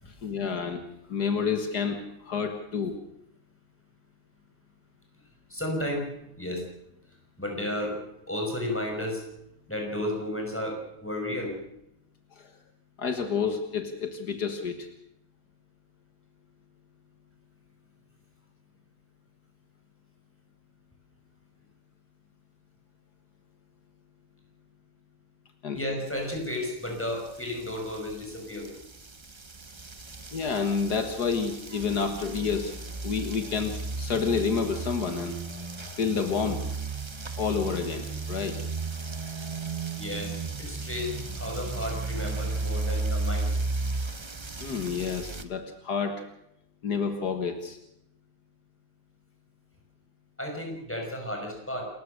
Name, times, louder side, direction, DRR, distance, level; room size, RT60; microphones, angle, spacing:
voice 1, 0.1-0.8 1.1-3.0 12.4-12.5 13.0-14.9 25.6-25.8 30.3-32.7 33.0-35.4 36.0-36.6 37.4-38.6 44.6-46.2 46.8-47.8, left 6 dB, 70° left, 7 dB, 2.0 m, -29 dB
voice 2, 5.5-6.1 6.4-6.6 7.4-7.9 8.3-9.2 9.7-11.5 25.7-28.7 40.0-43.5 50.4-51.9, left 1 dB, 5° left, 1 dB, 5.4 m, -33 dB
sound 1, 26.9-45.4, right 3 dB, 25° right, 0.7 m, -34 dB
28.0 x 14.5 x 6.6 m, 0.80 s
omnidirectional pair, 1.8 m